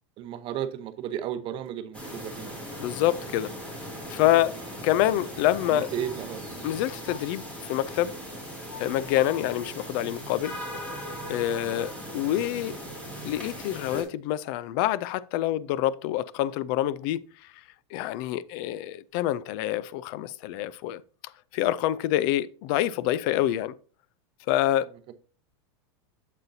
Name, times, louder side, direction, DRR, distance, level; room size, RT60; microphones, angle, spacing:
voice 1, 0.2-2.6 5.6-6.7, right 10 dB, 35° right, 0.7 m, -34 dB
sound 1, 1.9-14.0, equal, 10° left, 2.8 m, -39 dB
voice 2, 2.8-3.5 4.1-4.5 4.8-5.9 6.6-8.1 8.8-10.5 11.3-12.8 13.2-17.2 17.9-21.0 21.5-23.7 24.5-24.9, left 13 dB, 50° left, 0.4 m, -26 dB
7.8 x 7.3 x 2.7 m
supercardioid pair, 140°, 15 cm